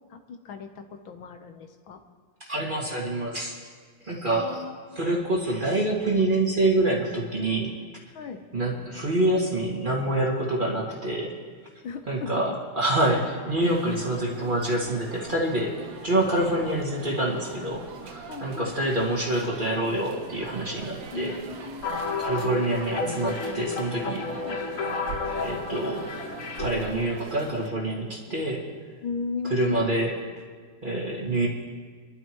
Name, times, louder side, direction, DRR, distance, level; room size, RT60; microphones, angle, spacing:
voice 1, 0.1-2.0 4.4-5.0 8.1-8.4 11.8-12.5 18.3-18.7 21.1-21.9 24.4-24.6 28.3-28.4 29.0-29.9, left 5 dB, 70° left, 6 dB, 1.6 m, -36 dB
voice 2, 2.5-3.5 4.0-4.6 5.0-7.7 8.5-11.3 12.1-15.8 16.0-21.4 22.2-24.3 25.4-26.1 26.6-28.6 29.5-30.2 30.8-31.5, right 1 dB, 25° right, -3 dB, 2.1 m, -26 dB
sound 1, 13.6-27.7, right 5 dB, 55° right, 1.1 m, -42 dB
sound 2, 21.8-26.9, left 4 dB, 45° left, 1.2 m, -31 dB
28.5 x 12.0 x 3.1 m, 1.6 s
omnidirectional pair, 2.4 m